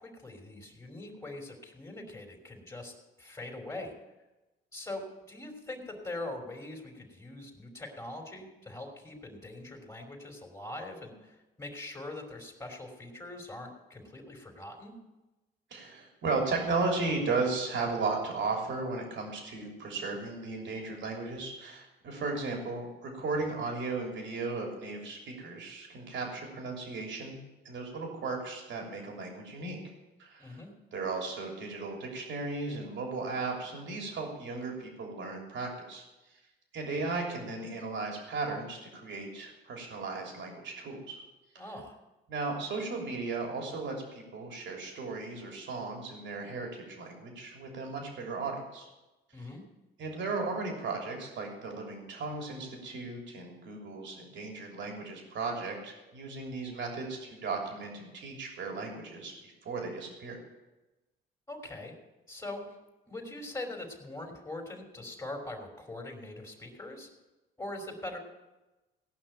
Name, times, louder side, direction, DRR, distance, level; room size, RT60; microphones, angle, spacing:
voice 1, 0.0-3.9 4.7-15.0 30.4-30.7 41.6-42.0 49.3-49.6 61.5-61.9 62.3-62.8 63.1-67.1 67.6-68.2, left 2 dB, 15° left, 1 dB, 2.8 m, -42 dB
voice 2, 15.7-27.4 27.6-29.8 30.2-30.6 30.9-36.0 36.7-41.2 41.5-41.6 42.3-48.9 50.0-59.3 59.6-60.4, right 3 dB, 70° right, 1 dB, 3.3 m, -35 dB
17.5 x 5.8 x 8.9 m, 1.1 s
cardioid pair, 90°, 20 cm